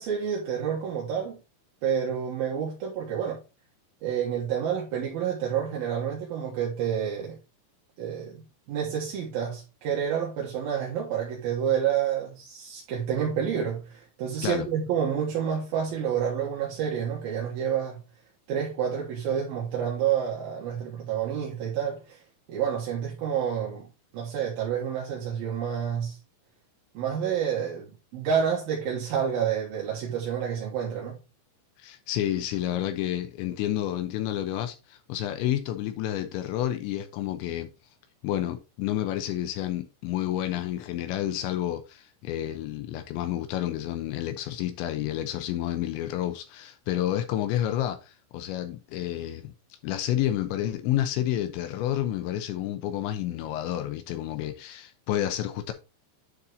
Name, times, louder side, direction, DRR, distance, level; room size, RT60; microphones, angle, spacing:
voice 1, 0.0-1.4 1.8-3.4 4.0-7.4 8.0-8.4 8.7-18.0 18.5-22.2 22.5-23.9 24.1-26.2 26.9-31.2, right 8 dB, 60° right, 2.7 m, -29 dB
voice 2, 31.8-37.7 38.2-55.7, left 12 dB, 80° left, 2.7 m, -30 dB
9.6 x 4.2 x 3.7 m
omnidirectional pair, 5.9 m